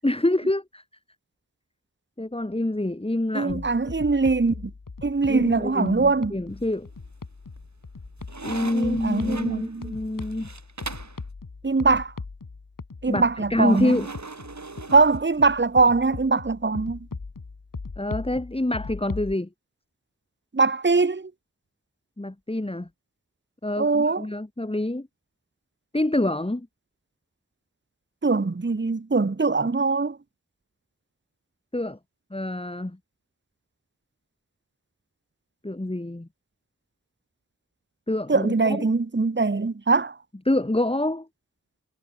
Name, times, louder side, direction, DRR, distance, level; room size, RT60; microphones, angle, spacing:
voice 1, 0.0-0.8 2.2-3.7 5.3-6.9 8.4-10.5 13.1-13.2 13.5-14.1 18.0-19.5 22.2-22.9 23.6-25.1 25.9-26.7 31.7-32.0 32.3-33.0 35.6-36.3 38.1-38.9 40.5-41.3, left 1 dB, 15° left, 1.9 m, -26 dB
voice 2, 3.3-4.7 5.0-6.4 8.7-9.9 11.6-12.1 13.0-13.9 14.9-17.0 20.5-21.3 23.8-24.2 28.2-30.2 38.3-40.2, right 4 dB, 35° right, 1.2 m, -22 dB
sound 1, 3.5-19.3, left 4 dB, 70° left, 5.6 m, -39 dB
sound 2, 6.5-7.1 7.5-11.2 13.7-15.7, right 3 dB, 55° right, 3.5 m, -40 dB
wide cardioid pair, 55°, 34 cm